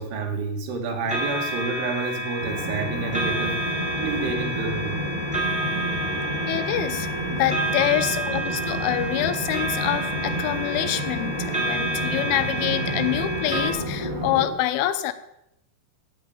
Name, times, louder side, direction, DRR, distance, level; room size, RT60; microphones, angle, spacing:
voice 1, 0.0-5.0 6.1-6.2, right 4 dB, 75° right, 3 dB, 4.1 m, -30 dB
sound 1, 1.1-13.7, right 1 dB, ahead, 1.8 m, -30 dB
sound 2, 2.4-14.5, right 1 dB, 50° right, 6.4 m, -30 dB
voice 2, 6.5-15.1, left 13 dB, 80° left, 11 dB, 3.3 m, -26 dB
14.0 x 5.7 x 9.2 m, 0.81 s
omnidirectional pair, 5.6 m